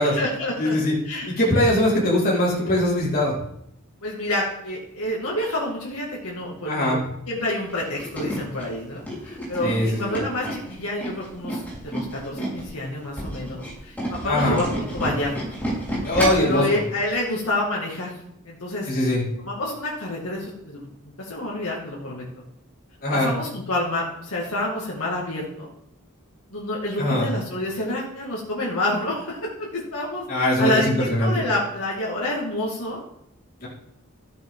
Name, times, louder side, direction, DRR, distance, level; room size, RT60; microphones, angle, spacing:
voice 1, 0.0-0.8 1.0-1.4 4.0-7.0 7.3-15.3 16.4-18.9 19.4-20.9 21.2-22.3 23.1-25.7 26.5-33.0, left 1 dB, 85° left, -4 dB, 2.3 m, -28 dB
voice 2, 0.6-0.9 1.4-3.3 6.7-7.0 9.6-10.2 14.2-14.6 16.0-16.6 18.9-19.2 23.0-23.3 27.0-27.3 30.3-31.4 33.6-33.7, left 1 dB, 40° left, -8 dB, 4.9 m, -21 dB
Tools, 7.7-12.7 13.0-16.5 17.0-17.1 17.4-17.5, right 1 dB, 10° left, 4.4 m, -30 dB
13.5 x 9.2 x 3.9 m, 0.77 s
head